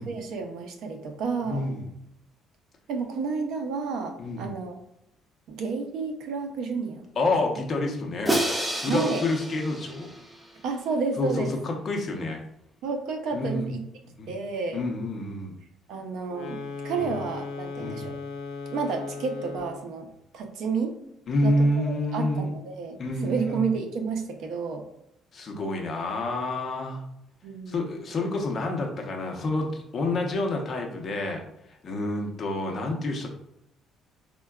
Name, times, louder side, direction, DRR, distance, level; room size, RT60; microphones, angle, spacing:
voice 1, 0.1-1.7 2.9-4.8 5.5-7.1 8.9-9.3 10.6-11.5 12.8-13.8 14.3-14.9 15.9-18.1 18.7-20.1 20.3-20.9 21.4-24.8 27.4-27.8, right 4 dB, 70° right, 4 dB, 0.5 m, -31 dB
voice 2, 1.4-1.9 4.2-4.5 7.2-8.4 8.8-10.1 11.2-12.4 13.3-13.7 14.2-14.3 14.7-15.5 16.9-17.1 17.7-18.1 21.3-22.5 23.0-23.6 25.3-27.0 27.7-31.4 31.8-33.3, left 2 dB, 40° left, 1 dB, 0.6 m, -28 dB
Crash cymbal, 8.3-10.5, right 1 dB, 10° right, 0.4 m, -29 dB
sound 1, 16.3-19.9, left 4 dB, 85° left, 0.5 m, -37 dB
4.4 x 2.2 x 2.2 m, 0.81 s
cardioid pair, 130°, 0 cm